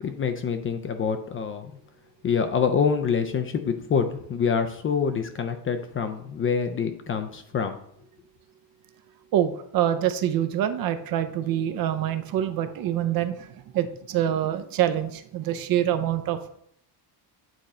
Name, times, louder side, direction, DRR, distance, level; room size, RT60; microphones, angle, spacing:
voice 1, 0.0-1.7 2.2-7.8, left 6 dB, 30° left, 8 dB, 0.4 m, -26 dB
voice 2, 9.3-16.5, right 11 dB, 45° right, 9 dB, 0.6 m, -26 dB
9.0 x 3.8 x 4.2 m, 0.67 s
cardioid pair, 135°, 48 cm